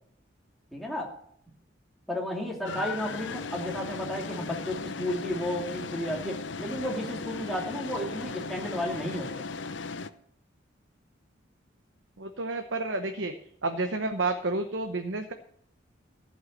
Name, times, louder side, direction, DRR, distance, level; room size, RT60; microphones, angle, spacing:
voice 1, 0.7-1.1 2.1-9.3, left 1 dB, ahead, -2 dB, 2.7 m, -33 dB
sound 1, 2.6-10.1, left 4 dB, 70° left, 0.7 m, -37 dB
voice 2, 12.2-13.3 13.6-15.3, right 2 dB, 75° right, 6 dB, 1.0 m, -30 dB
14.5 x 5.6 x 8.1 m, 0.67 s
head